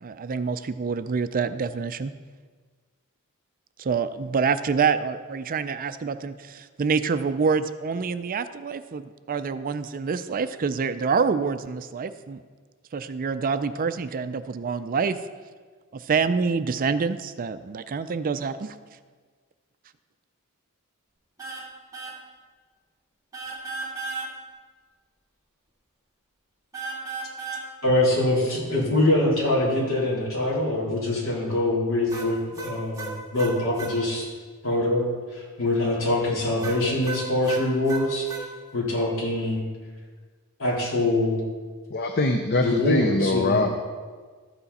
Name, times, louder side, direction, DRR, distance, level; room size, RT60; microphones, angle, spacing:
voice 1, 0.0-2.1 3.8-12.4 12.9-15.2 15.9-18.8, right 5 dB, 40° right, 11 dB, 0.4 m, -26 dB
sound 1, 21.4-21.7 21.9-22.2 23.3-24.3 26.7-27.6 32.1-34.0 36.6-38.4, right 3 dB, 15° right, 1.8 m, -34 dB
voice 2, 27.8-34.3 34.6-35.1 35.3-38.3 38.7-39.7 40.6-41.4 42.6-43.6, left 1 dB, 65° left, -5 dB, 3.7 m, -24 dB
voice 3, 41.9-43.7, left 2 dB, 45° left, 5 dB, 0.7 m, -23 dB
13.0 x 8.1 x 4.2 m, 1.5 s
head